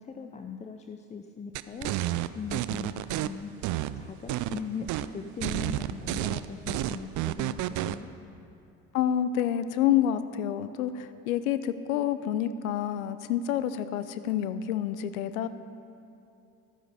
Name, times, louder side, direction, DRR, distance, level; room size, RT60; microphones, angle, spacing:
voice 1, 0.0-2.9 3.2-3.5 4.0-8.1, left 5 dB, 15° left, 6 dB, 0.5 m, -39 dB
sound 1, 1.5-3.3 3.6-4.6 4.9-5.1 5.4-8.0, right 15 dB, 45° right, 0.5 m, -30 dB
voice 2, 8.9-15.5, left 10 dB, 75° left, 13 dB, 0.6 m, -28 dB
12.5 x 9.6 x 4.9 m, 2.8 s
hypercardioid pair, 65°, 42 cm